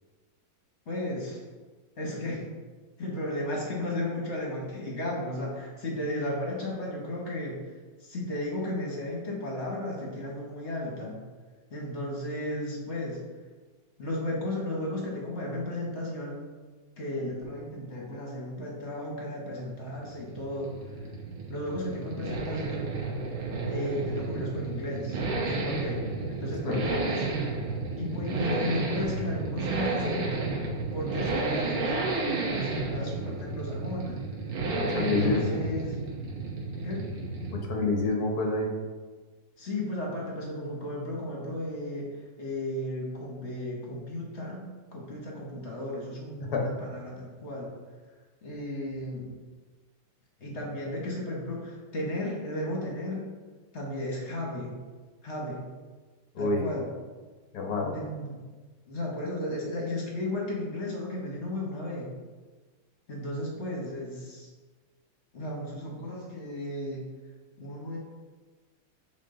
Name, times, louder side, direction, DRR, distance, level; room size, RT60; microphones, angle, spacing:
voice 1, 0.9-1.4 2.0-2.5 3.0-7.6 8.0-11.2 11.7-13.2 14.0-16.5 17.0-20.7 21.5-22.9 23.6-27.3 28.0-30.6 30.9-34.2 35.0-36.0 36.8-37.1 39.6-42.1 42.4-44.6 44.9-47.7 48.4-49.3 50.4-53.3 53.7-54.7 55.2-55.7 56.4-56.9 57.9-58.4 58.9-62.1 63.1-64.5 65.3-67.1 67.6-68.0, left 1 dB, 40° left, -2 dB, 1.3 m, -34 dB
Accelerating revving vroom, 19.7-37.8 38.1-38.2, right 3 dB, 85° right, 1.9 m, -32 dB
voice 2, 34.8-35.6 37.5-38.7 46.4-46.8 56.3-56.6 57.5-57.9, left 3 dB, 55° left, 1 dB, 1.2 m, -28 dB
6.3 x 4.2 x 3.8 m, 1.4 s
omnidirectional pair, 2.3 m